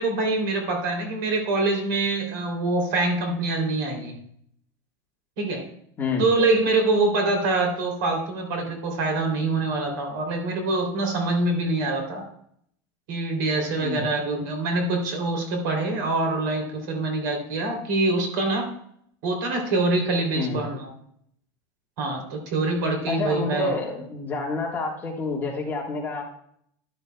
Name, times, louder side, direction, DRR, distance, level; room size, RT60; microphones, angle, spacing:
voice 1, 0.0-4.1 5.4-5.6 6.2-12.2 13.1-18.7 19.2-20.9 22.0-23.8, right 2 dB, 70° right, 3 dB, 3.0 m, -25 dB
voice 2, 6.0-6.3 13.8-14.0 20.3-20.6 23.1-26.2, left 4 dB, 20° left, -1 dB, 1.5 m, -29 dB
12.0 x 11.0 x 2.2 m, 0.68 s
supercardioid pair, 160°, 11 cm